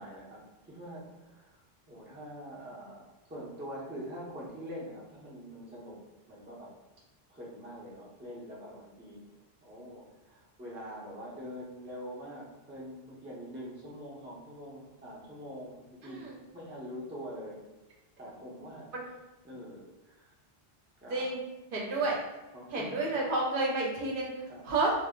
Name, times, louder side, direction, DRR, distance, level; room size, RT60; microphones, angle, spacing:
voice 1, 0.0-6.0 6.3-6.7 7.3-16.2 16.5-17.6 18.2-18.9 19.4-20.3 21.0-21.3 22.5-23.0 24.5-24.6, equal, 15° right, -5 dB, 0.5 m, -44 dB
voice 2, 16.0-16.3 18.9-19.0 21.1-21.4 21.7-22.2 22.7-24.9, right 2 dB, 65° right, -3 dB, 0.7 m, -30 dB
2.1 x 2.1 x 3.5 m, 1.0 s
omnidirectional pair, 1.0 m